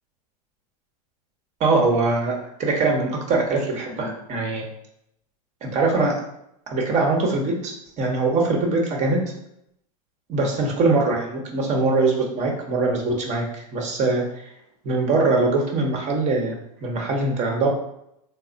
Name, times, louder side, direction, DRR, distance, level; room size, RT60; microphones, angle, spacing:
voice 1, 1.6-2.3 2.6-4.7 5.6-6.2 6.7-9.2 10.3-13.4 13.7-14.5 14.8-16.5 16.8-17.7, right 3 dB, 35° right, 0 dB, 1.0 m, -22 dB
3.2 x 2.0 x 3.9 m, 0.78 s
hypercardioid pair, 110°, 20 cm